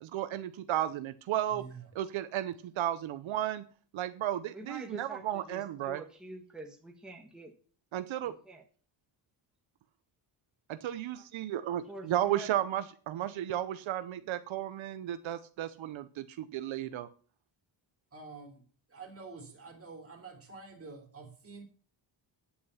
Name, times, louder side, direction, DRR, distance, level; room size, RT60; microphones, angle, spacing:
voice 1, 0.0-1.6 2.0-3.6 3.9-6.0 7.9-8.3 10.7-17.1, right 12 dB, 75° right, 0.8 m, -34 dB
voice 2, 1.5-1.9 18.1-18.6 18.9-21.6, right 4 dB, 30° right, 3.3 m, -47 dB
voice 3, 4.5-7.5 8.2-8.6 11.9-12.9, right 2 dB, ahead, 1.5 m, -47 dB
9.7 x 8.5 x 5.6 m
cardioid pair, 125°, 47 cm